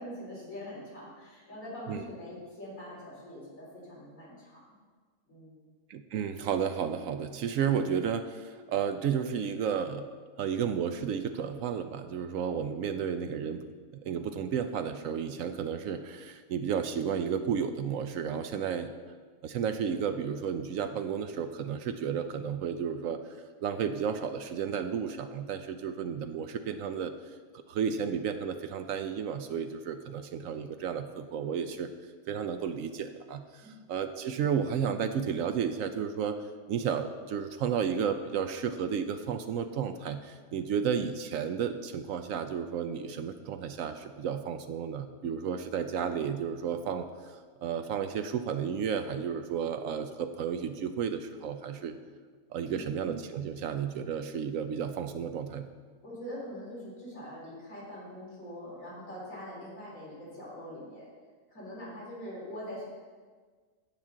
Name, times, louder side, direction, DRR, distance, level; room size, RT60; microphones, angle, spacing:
voice 1, 0.0-4.6 5.3-5.7 33.6-33.9 52.6-53.0 56.0-61.1 61.5-62.9, equal, 55° left, -7 dB, 3.8 m, -43 dB
voice 2, 5.9-10.1 10.4-13.6 13.9-18.9 19.4-23.2 23.6-27.1 27.5-31.9 32.3-52.0 52.5-55.7, right 7 dB, 70° right, 9 dB, 0.8 m, -32 dB
16.0 x 5.9 x 3.7 m, 1.5 s
omnidirectional pair, 1.7 m